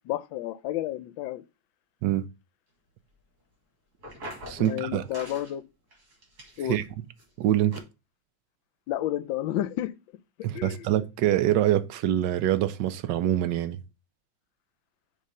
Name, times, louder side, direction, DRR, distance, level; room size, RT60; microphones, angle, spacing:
voice 1, 0.1-1.4 4.6-5.6 6.6-6.8 8.9-9.9 10.5-10.9, left 13 dB, 75° left, 1.3 m, -31 dB
sound 1, 4.0-4.8 5.1-5.5 5.9-6.8 7.2-7.3 7.7-7.8, equal, 45° right, 3.0 m, -42 dB
voice 2, 4.5-5.1 6.7-6.8 7.4-7.8 10.4-13.8, right 12 dB, 70° right, 1.1 m, -25 dB
6.6 x 3.7 x 5.4 m
omnidirectional pair, 2.3 m